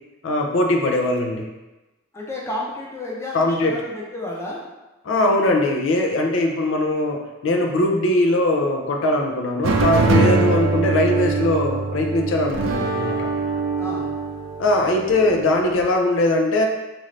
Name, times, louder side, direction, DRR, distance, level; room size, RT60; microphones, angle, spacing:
voice 1, 0.2-1.5 3.3-3.7 5.1-13.3 14.6-16.7, left 1 dB, 85° left, 2 dB, 0.5 m, -20 dB
voice 2, 2.1-4.6 13.8-14.1, left 1 dB, 15° left, -4 dB, 0.6 m, -31 dB
sound 1, 9.6-15.8, right 3 dB, 85° right, 0.4 m, -23 dB
3.7 x 2.6 x 3.2 m, 1.1 s
head